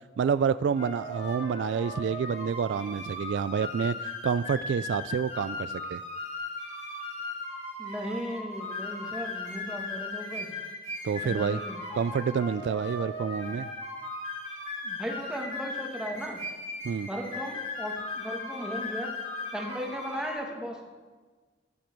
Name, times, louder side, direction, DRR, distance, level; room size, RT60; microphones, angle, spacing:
voice 1, 0.2-6.0 11.0-11.6 11.9-13.7 16.8-17.1, right 6 dB, 75° right, 16 dB, 0.3 m, -28 dB
sound 1, 0.7-20.3, left 2 dB, 45° left, 4.1 m, -37 dB
voice 2, 7.8-10.5 11.2-11.8 14.8-16.4 17.1-19.1 19.5-20.9, equal, 5° right, 0 dB, 1.8 m, -36 dB
14.0 x 7.7 x 5.2 m, 1.3 s
head